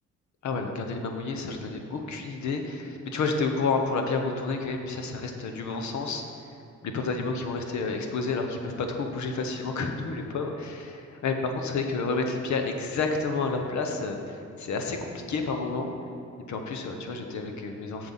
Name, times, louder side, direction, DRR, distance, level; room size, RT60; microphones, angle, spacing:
voice 1, 0.4-6.2 6.8-15.9 16.5-18.1, left 4 dB, 70° left, 4 dB, 1.1 m, -30 dB
7.6 x 6.9 x 5.7 m, 2.6 s
cardioid pair, 90°, 30 cm